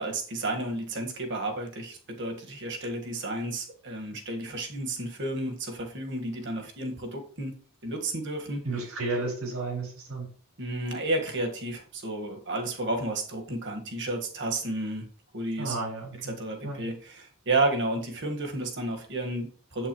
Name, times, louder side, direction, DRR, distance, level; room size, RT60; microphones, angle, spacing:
voice 1, 0.0-7.5 7.8-8.6 10.6-15.1 15.3-15.8 16.2-19.9, right 2 dB, 55° right, 3 dB, 1.6 m, -32 dB
voice 2, 8.6-10.3 15.6-16.3 16.6-16.9, right 3 dB, 90° right, -5 dB, 4.5 m, -32 dB
8.3 x 7.8 x 3.1 m, 0.43 s
head